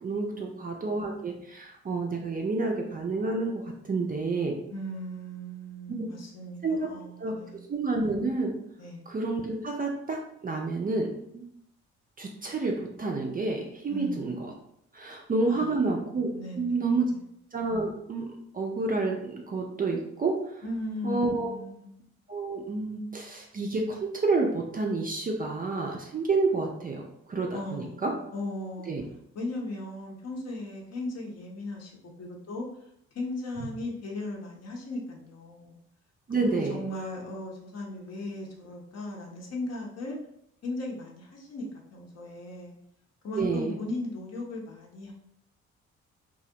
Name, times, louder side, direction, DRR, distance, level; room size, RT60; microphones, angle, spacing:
voice 1, 0.0-4.5 6.0-6.1 6.6-6.9 7.2-7.3 7.7-8.5 9.1-11.4 12.2-14.5 14.9-16.3 16.5-17.1 17.5-20.6 21.0-21.5 22.3-27.0 27.3-28.1 28.9-29.0 36.3-36.8 43.4-43.8, right 3 dB, 25° right, 1 dB, 0.4 m, -29 dB
voice 2, 4.7-7.7 8.8-9.0 13.9-14.2 15.5-15.7 16.3-17.2 20.6-21.9 27.5-28.9 29.3-31.9 32.2-32.7 33.1-35.8 36.4-40.2 40.6-41.7 41.9-42.8 43.2-45.1, left 1 dB, 45° left, -1 dB, 0.8 m, -37 dB
2.3 x 2.0 x 2.7 m, 0.76 s
hypercardioid pair, 45°, 35 cm